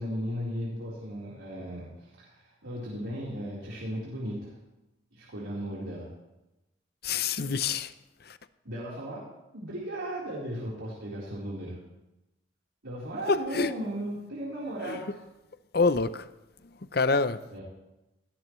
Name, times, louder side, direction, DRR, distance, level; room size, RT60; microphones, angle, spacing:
voice 1, 0.0-4.5 5.1-6.1 8.6-9.2 9.5-11.8 12.8-15.2 17.5-17.6, equal, 90° right, -7 dB, 4.2 m, -36 dB
voice 2, 7.0-7.9 13.3-13.7 14.9-15.0 15.7-16.2 16.9-17.6, left 4 dB, 50° left, 13 dB, 0.7 m, -26 dB
17.5 x 17.5 x 3.2 m, 0.97 s
head